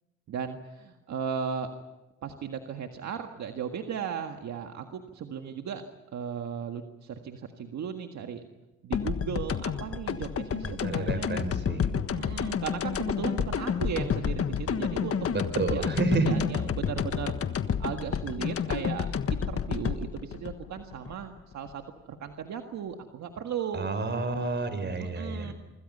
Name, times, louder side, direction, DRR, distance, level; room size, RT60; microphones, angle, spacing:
voice 1, 0.3-1.7 2.2-5.8 6.1-8.4 8.8-11.3 12.1-15.2 15.6-15.9 16.2-17.3 17.8-24.2 25.0-25.5, right 7 dB, 65° right, 5 dB, 1.8 m, -36 dB
sound 1, 8.9-21.7, left 7 dB, 50° left, 1.5 m, -30 dB
voice 2, 10.6-11.9 15.3-16.3 23.7-25.5, right 3 dB, 35° right, 10 dB, 4.8 m, -30 dB
26.5 x 25.5 x 5.5 m, 1.1 s
cardioid pair, 90°, 30 cm